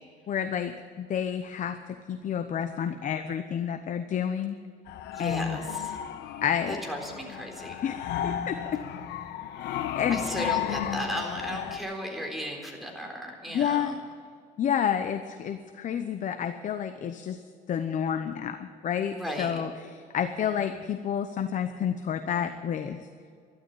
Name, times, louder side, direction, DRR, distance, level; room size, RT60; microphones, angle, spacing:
voice 1, 0.3-1.8 2.1-4.6 5.2-5.6 6.4-6.8 7.8-8.8 9.6-10.2 13.5-13.9 14.6-17.4 17.7-23.0, left 8 dB, 50° left, 8 dB, 0.9 m, -30 dB
sound 1, 4.9-11.8, left 10 dB, 85° left, 1.0 m, -34 dB
voice 2, 5.1-6.0 6.7-7.8 10.1-13.9 19.1-19.6 20.1-20.5, equal, ahead, 0 dB, 3.8 m, -35 dB
12.5 x 12.0 x 8.8 m, 2.2 s
cardioid pair, 110°, 17 cm